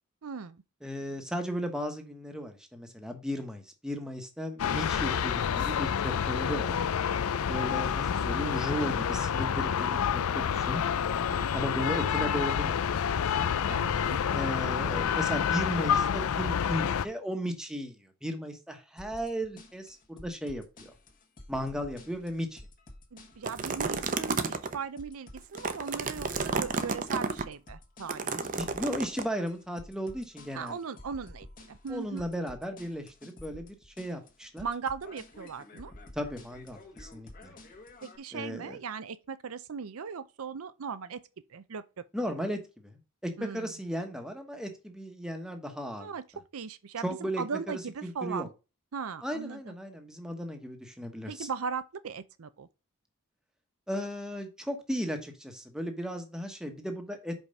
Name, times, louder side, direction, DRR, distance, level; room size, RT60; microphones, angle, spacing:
voice 1, 0.2-0.6 11.3-11.7 13.7-14.2 23.1-28.3 30.5-32.3 34.6-35.9 38.0-41.2 41.5-42.0 43.4-43.7 46.0-48.5 48.9-49.7 51.3-52.7, right 6 dB, 80° right, 0.6 m, -38 dB
voice 2, 0.8-6.8 7.5-10.8 11.5-12.7 13.2-13.5 14.3-20.9 21.5-22.6 28.3-30.8 31.9-34.7 36.2-37.5 38.3-38.8 42.1-46.1 47.0-48.5 49.2-51.5 53.9-57.3, equal, 5° right, 1.1 m, -35 dB
sound 1, 4.6-17.1, left 8 dB, 85° left, 0.4 m, -28 dB
sound 2, 19.0-38.2, left 1 dB, 40° left, 1.5 m, -51 dB
sound 3, 23.4-24.8 25.4-27.4 28.1-29.2, right 4 dB, 40° right, 0.7 m, -31 dB
5.4 x 4.9 x 5.3 m
head